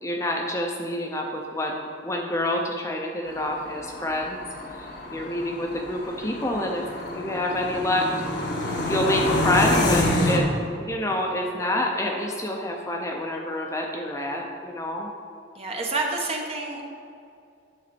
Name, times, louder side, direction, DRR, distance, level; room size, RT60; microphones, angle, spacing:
voice 1, 0.0-4.4 5.1-6.9 7.1-8.1 8.9-10.5 10.8-15.1, left 1 dB, 15° left, 0 dB, 0.6 m, -27 dB
sound 1, 3.3-10.4, left 1 dB, 60° left, 1.4 m, -27 dB
voice 2, 15.5-16.8, right 2 dB, 30° right, 0 dB, 1.0 m, -28 dB
9.6 x 4.0 x 6.8 m, 2.5 s
head